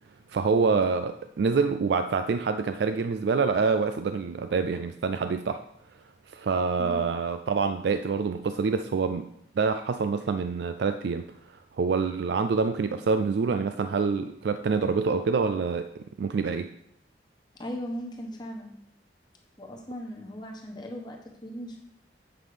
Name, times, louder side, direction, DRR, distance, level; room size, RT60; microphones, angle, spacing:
voice 1, 0.3-5.6 6.3-9.3 9.6-16.7, right 5 dB, 70° right, 9 dB, 0.4 m, -26 dB
voice 2, 17.6-18.7 19.6-21.8, equal, 25° left, 1 dB, 1.1 m, -38 dB
7.9 x 5.4 x 5.0 m, 0.75 s
head